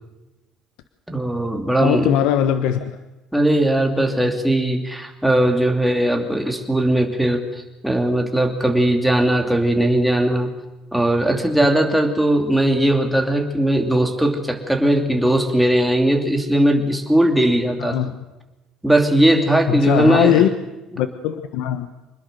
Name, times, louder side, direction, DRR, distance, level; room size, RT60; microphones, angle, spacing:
voice 1, 1.1-2.1 3.3-7.4 7.8-10.5 10.9-18.0 18.8-20.4, right 1 dB, ahead, 3 dB, 2.7 m, -18 dB
voice 2, 1.8-3.0 17.8-18.1 19.7-20.5 21.0-21.9, left 11 dB, 85° left, 10 dB, 1.1 m, -20 dB
25.5 x 20.5 x 6.7 m, 1.1 s
cardioid pair, 140°, 0 cm